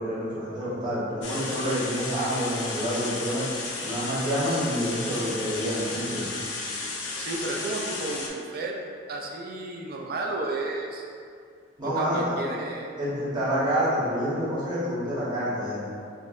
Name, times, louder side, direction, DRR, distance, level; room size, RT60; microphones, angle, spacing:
voice 1, 0.0-3.4 3.8-6.3 11.8-12.3 13.0-15.8, equal, 20° right, -11 dB, 1.0 m, -28 dB
sound 1, 1.2-8.3, left 3 dB, 60° left, 0.4 m, -34 dB
voice 2, 7.2-8.8 9.1-11.0 11.8-12.9, right 2 dB, 50° right, 0 dB, 0.4 m, -32 dB
5.2 x 2.0 x 2.5 m, 2.3 s
head